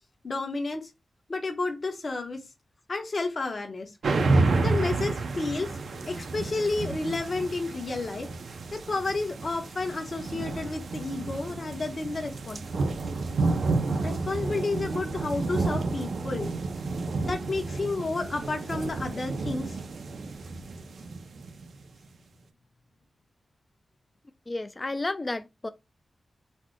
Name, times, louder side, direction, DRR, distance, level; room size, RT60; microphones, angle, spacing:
voice 1, 0.2-0.9 1.3-2.4 2.9-3.9 4.6-5.7 6.1-8.3 8.7-12.9 14.0-16.5 17.2-19.8, left 3 dB, 50° left, 1.0 m, -31 dB
Lightning and Thunder Clap, 4.0-21.8, right 3 dB, 80° right, 0.6 m, -30 dB
voice 2, 24.5-25.7, left 2 dB, 30° left, 0.4 m, -32 dB
4.2 x 2.1 x 4.5 m
wide cardioid pair, 90°, 0 cm